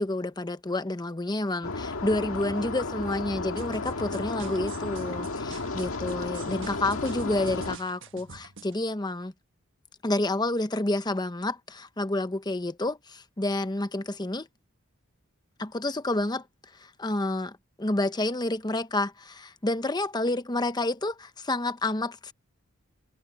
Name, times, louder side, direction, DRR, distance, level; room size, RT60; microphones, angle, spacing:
voice 1, 0.0-9.3 10.0-14.5 15.6-16.5 16.7-22.3, left 2 dB, 20° left, 0.9 m, -29 dB
sound 1, 1.6-7.8, left 3 dB, 85° left, 1.7 m, -33 dB
sound 2, 3.5-8.8, right 5 dB, 60° right, 1.4 m, -47 dB
head